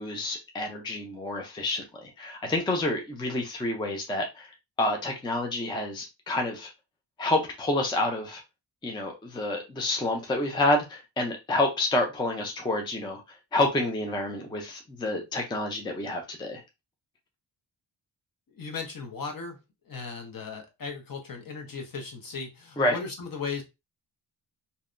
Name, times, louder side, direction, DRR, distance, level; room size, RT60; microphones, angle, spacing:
voice 1, 0.0-6.7 7.2-8.4 8.8-13.2 13.5-16.6 22.8-23.0, left 2 dB, 10° left, 0.4 m, -28 dB
voice 2, 18.5-19.6 19.9-23.6, left 5 dB, 45° left, 0.8 m, -37 dB
2.7 x 2.1 x 2.5 m
wide cardioid pair, 105°, 46 cm